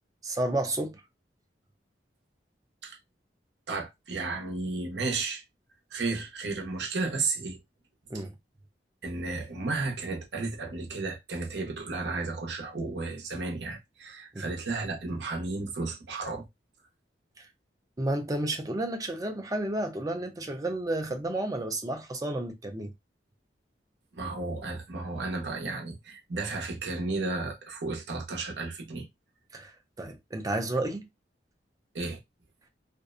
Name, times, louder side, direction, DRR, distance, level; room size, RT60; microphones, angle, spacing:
voice 1, 0.2-1.0 8.1-8.3 14.3-14.5 17.4-17.5 18.0-22.9 29.5-31.1, right 1 dB, 20° right, 0.5 m, -31 dB
voice 2, 3.7-5.4 5.9-7.6 9.0-16.5 24.1-29.1 31.9-32.2, right 3 dB, 75° right, 0.7 m, -33 dB
2.5 x 2.0 x 2.4 m
head